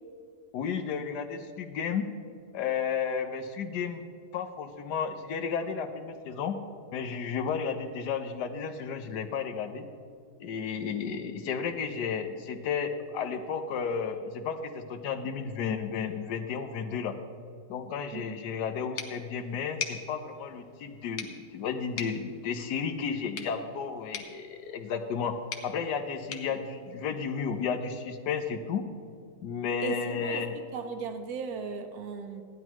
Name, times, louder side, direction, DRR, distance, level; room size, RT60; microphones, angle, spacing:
voice 1, 0.5-2.1 2.5-4.0 4.3-6.6 6.9-9.9 10.4-17.1 17.7-25.4 25.6-28.8 29.4-30.6, left 6 dB, 70° left, 7 dB, 1.4 m, -33 dB
sound 1, 19.0-27.7, left 6 dB, 55° left, 1.1 m, -43 dB
voice 2, 29.8-32.4, right 5 dB, 60° right, 7 dB, 1.3 m, -37 dB
15.5 x 11.0 x 3.0 m, 2.3 s
omnidirectional pair, 2.0 m